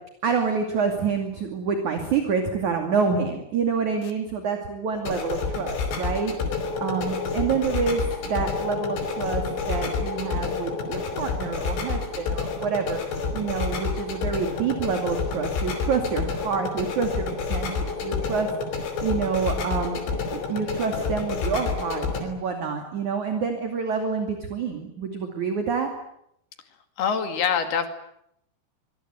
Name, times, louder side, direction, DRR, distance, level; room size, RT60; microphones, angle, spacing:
voice 1, 0.2-6.5 6.8-13.0 13.3-18.5 19.0-25.9, right 5 dB, 45° right, 5 dB, 3.5 m, -27 dB
sound 1, 5.0-22.2, left 4 dB, 90° left, 7.5 m, -29 dB
voice 2, 27.0-27.9, left 7 dB, 60° left, 7 dB, 4.1 m, -24 dB
25.0 x 22.5 x 9.5 m, 0.76 s
omnidirectional pair, 5.3 m